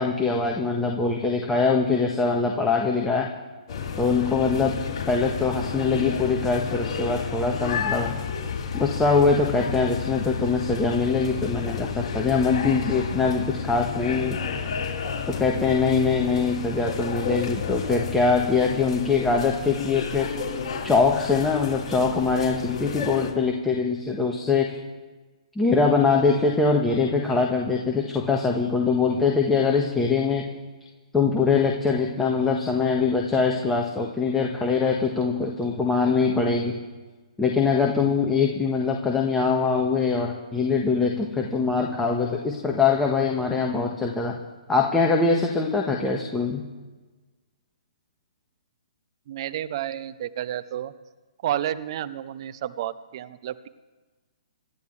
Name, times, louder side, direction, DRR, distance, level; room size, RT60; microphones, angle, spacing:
voice 1, 0.0-3.3 4.0-4.8 5.1-8.2 8.7-14.4 15.3-20.3 20.8-24.8 25.5-30.5 31.1-36.8 37.4-44.4 44.7-46.6, left 4 dB, 10° left, 0 dB, 1.6 m, -23 dB
sound 1, 3.7-23.3, left 6 dB, 45° left, 3.8 m, -31 dB
voice 2, 49.3-50.9 51.4-53.7, right 11 dB, 45° right, 12 dB, 0.8 m, -31 dB
28.0 x 13.0 x 3.4 m, 1.3 s
figure-of-eight pair, 125°, 4 cm